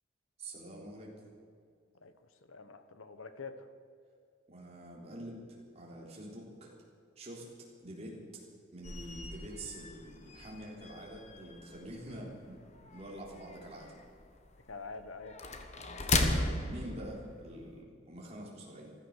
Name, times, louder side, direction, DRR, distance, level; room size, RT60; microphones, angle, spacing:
voice 1, 0.4-1.1 4.5-5.4 5.7-6.7 7.2-8.4 8.7-12.6 12.9-14.0 16.7-18.9, right 1 dB, 30° right, -3 dB, 3.6 m, -46 dB
voice 2, 2.4-3.7 12.1-12.4 14.7-15.4, left 4 dB, 80° left, 10 dB, 1.2 m, -46 dB
sound 1, 8.8-17.8, left 2 dB, 35° left, 1.2 m, -37 dB
15.0 x 13.5 x 6.5 m, 2.3 s
head